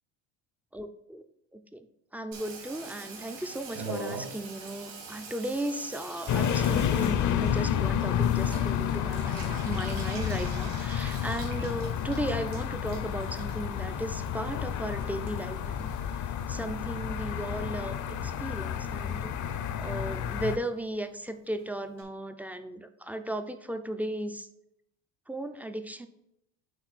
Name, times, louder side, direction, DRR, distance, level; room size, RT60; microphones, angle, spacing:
voice 1, 0.7-1.2 1.5-1.9 2.1-16.2 16.5-19.3 19.8-24.5 25.3-26.1, right 1 dB, 5° right, 8 dB, 0.3 m, -36 dB
Water tap faucet / Bathtub (filling or washing), 2.3-16.9 17.1-17.9 18.2-18.3 18.5-18.6 18.8-19.2 19.5-19.6 19.8-19.9 20.2-20.3 20.5-20.6 20.8-20.9 21.2-21.3 21.6-21.7 22.0-22.1, right 3 dB, 75° right, 3.0 m, -44 dB
sound 1, 6.3-20.6, left 9 dB, 45° left, 0.6 m, -30 dB
9.0 x 3.9 x 4.1 m, 0.80 s
cardioid pair, 105°, 42 cm